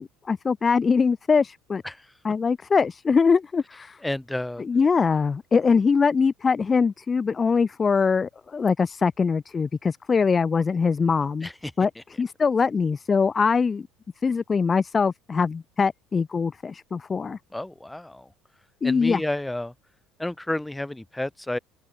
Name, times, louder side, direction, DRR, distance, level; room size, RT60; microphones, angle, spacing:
voice 1, 0.0-1.8 2.2-4.0 4.7-11.5 11.8-11.9 12.2-13.9 14.2-17.4 18.8-19.2, left 5 dB, 25° left, 0.9 m, -22 dB
voice 2, 4.0-4.6 11.4-12.0 17.5-18.3 18.8-19.7 20.2-21.6, left 1 dB, 5° left, 3.9 m, -31 dB
open air
cardioid pair, 120°, 0 cm